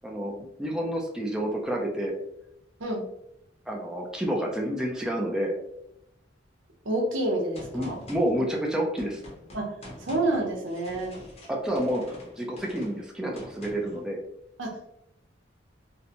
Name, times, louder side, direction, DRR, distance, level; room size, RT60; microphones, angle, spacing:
voice 1, 0.6-2.1 3.7-5.5 7.7-9.2 11.5-14.2, equal, 5° right, -1 dB, 0.3 m, -29 dB
voice 2, 6.8-8.0 9.5-11.2 14.6-14.8, right 2 dB, 80° right, 0 dB, 0.7 m, -29 dB
Gunshot gunfire, 7.5-14.0, left 1 dB, 35° left, 0.6 m, -45 dB
2.5 x 2.1 x 2.8 m, 0.79 s
head